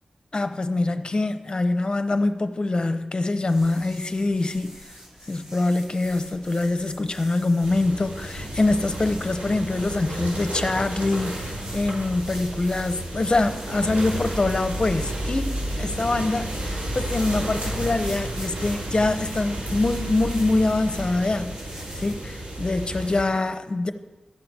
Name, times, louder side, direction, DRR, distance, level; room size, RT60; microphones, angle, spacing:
voice 1, 0.3-4.8 5.3-23.9, left 2 dB, 40° left, 0.8 m, -24 dB
sound 1, 3.5-22.2, equal, 25° right, 2.4 m, -45 dB
sound 2, 7.6-23.2, right 1 dB, 70° right, 3.9 m, -32 dB
13.0 x 5.8 x 8.1 m
wide cardioid pair, 90°, 2 cm